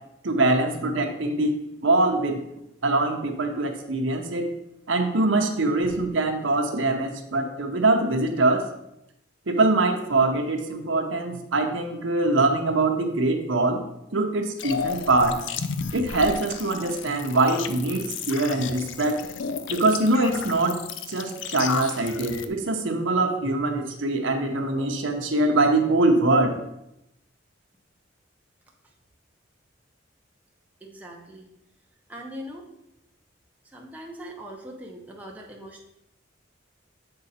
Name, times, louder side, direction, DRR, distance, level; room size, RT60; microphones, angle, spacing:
voice 1, 0.2-2.4 2.8-4.5 4.9-8.7 9.5-13.8 14.1-15.4 15.9-19.2 19.7-26.5, right 2 dB, 80° right, 4 dB, 0.8 m, -23 dB
sound 1, 14.6-22.5, left 6 dB, 75° left, 0.5 m, -33 dB
voice 2, 30.8-31.5 32.1-32.7 33.7-35.8, equal, 10° right, -1 dB, 0.8 m, -41 dB
7.8 x 3.8 x 4.2 m, 0.84 s
head